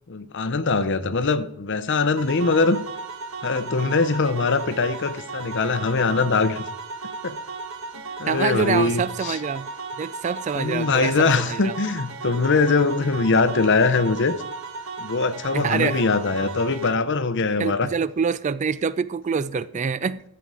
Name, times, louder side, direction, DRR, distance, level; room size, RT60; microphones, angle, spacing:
voice 1, 0.1-2.8 3.4-6.6 7.2-7.4 8.2-9.4 10.6-14.3 15.0-17.9, left 4 dB, 55° left, 0.7 m, -22 dB
sound 1, 2.2-16.9, right 4 dB, 65° right, 1.2 m, -35 dB
voice 2, 8.3-9.7 10.0-11.8 15.5-16.0 17.6-20.2, right 6 dB, 35° right, 0.3 m, -26 dB
12.5 x 6.9 x 4.8 m
head